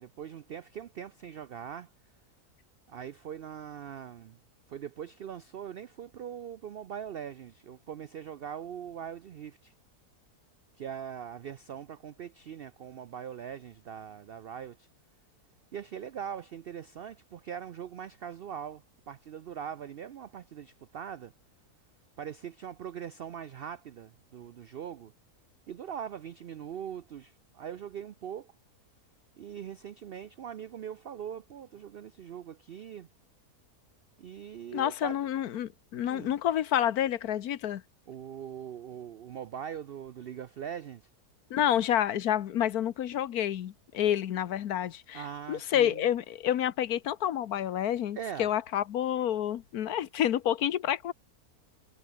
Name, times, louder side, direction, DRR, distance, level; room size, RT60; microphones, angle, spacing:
voice 1, 0.0-1.9 2.9-4.4 4.7-9.7 10.8-14.9 15.7-21.3 22.2-25.1 25.7-28.5 29.4-33.1 34.2-35.2 36.0-36.3 38.1-41.1 45.1-46.1 48.2-48.5, right 8 dB, 75° right, 0.5 m, -41 dB
voice 2, 34.7-37.8 41.5-45.2 45.5-51.1, left 11 dB, 75° left, 1.4 m, -29 dB
omnidirectional pair, 1.7 m